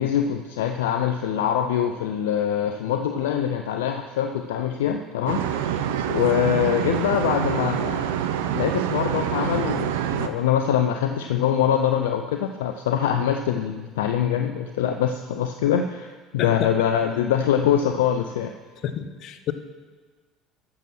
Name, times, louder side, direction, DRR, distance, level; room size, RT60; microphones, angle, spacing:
voice 1, 0.0-8.2 8.5-18.5, left 9 dB, 80° left, 6 dB, 0.6 m, -24 dB
sound 1, 5.3-10.3, right 10 dB, 80° right, 0.7 m, -26 dB
voice 2, 18.8-19.5, left 10 dB, 55° left, 10 dB, 1.0 m, -29 dB
13.5 x 7.1 x 6.1 m, 1.4 s
hypercardioid pair, 70°, 0 cm